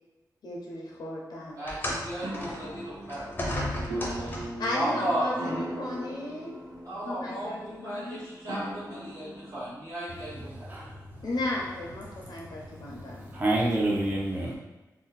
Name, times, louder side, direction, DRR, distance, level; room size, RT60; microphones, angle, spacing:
voice 1, 0.4-1.6 4.6-6.6 7.0-8.2 11.2-13.7, left 1 dB, 80° left, -3 dB, 0.6 m, -35 dB
voice 2, 1.6-3.3 4.2-4.4 4.7-5.3 6.8-10.8, right 1 dB, 50° right, -10 dB, 0.9 m, -35 dB
sound 1, 1.7-4.7 5.7-5.9 6.7-6.8, left 1 dB, 25° left, 0.6 m, -34 dB
sound 2, 2.2-9.7, right 1 dB, 85° right, 0.6 m, -39 dB
voice 3, 10.3-11.2 12.2-14.6, right 1 dB, 25° right, -5 dB, 0.5 m, -30 dB
2.6 x 2.1 x 3.9 m, 1.1 s
wide cardioid pair, 160°, 7 cm